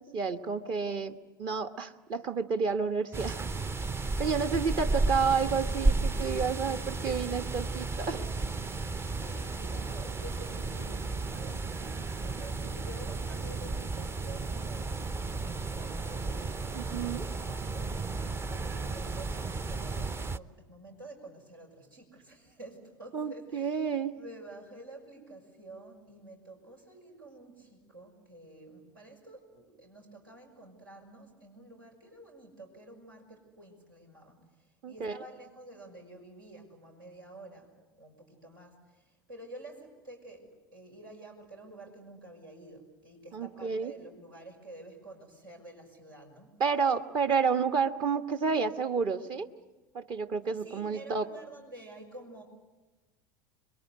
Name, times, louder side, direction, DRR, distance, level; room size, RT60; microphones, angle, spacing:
voice 1, 0.0-3.4 4.2-8.2 16.7-17.3 23.1-24.1 34.8-35.2 43.3-43.9 46.6-49.5 49.9-51.3, right 5 dB, 45° right, 7 dB, 1.4 m, -30 dB
sound 1, 3.1-20.4, right 3 dB, 20° right, 0.8 m, -33 dB
voice 2, 9.0-18.1 18.5-23.8 24.1-34.4 34.9-37.7 38.0-46.5 50.6-52.4, right 1 dB, 85° right, 1 dB, 6.2 m, -50 dB
27.5 x 22.5 x 8.2 m, 1.2 s
figure-of-eight pair, 75°, 11 cm